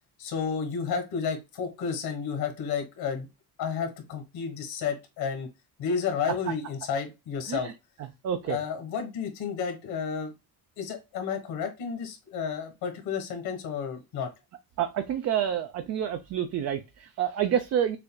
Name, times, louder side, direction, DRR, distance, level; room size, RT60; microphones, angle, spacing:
voice 1, 0.2-3.3 3.6-5.5 5.8-7.7 8.5-10.3 10.8-14.3, left 6 dB, 70° left, 1.5 m, -31 dB
voice 2, 8.2-8.6 14.8-18.0, right 9 dB, 40° right, 0.5 m, -28 dB
6.6 x 2.5 x 2.2 m
cardioid pair, 175°, 39 cm